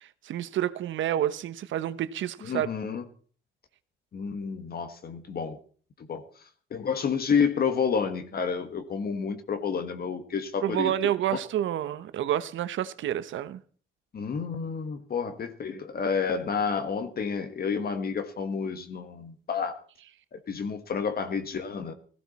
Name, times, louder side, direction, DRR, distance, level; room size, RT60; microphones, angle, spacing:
voice 1, 0.0-2.7 10.6-13.6, right 11 dB, 75° right, 1.0 m, -29 dB
voice 2, 2.5-3.0 4.1-5.6 6.1-6.2 6.7-11.1 14.1-19.8 20.3-21.9, left 6 dB, 50° left, 1.6 m, -30 dB
16.5 x 15.5 x 4.2 m
cardioid pair, 90°, 20 cm